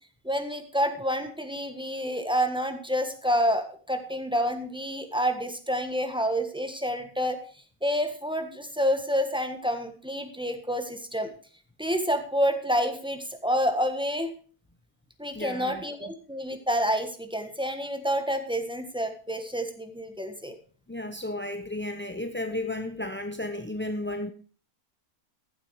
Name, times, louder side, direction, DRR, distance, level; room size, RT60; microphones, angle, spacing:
voice 1, 0.2-7.4 7.8-11.3 11.8-14.3 15.2-20.5, equal, 5° right, 7 dB, 1.3 m, -28 dB
voice 2, 15.3-15.8 20.9-24.3, left 1 dB, 15° left, 7 dB, 0.4 m, -33 dB
14.5 x 8.1 x 4.8 m, 0.40 s
omnidirectional pair, 1.5 m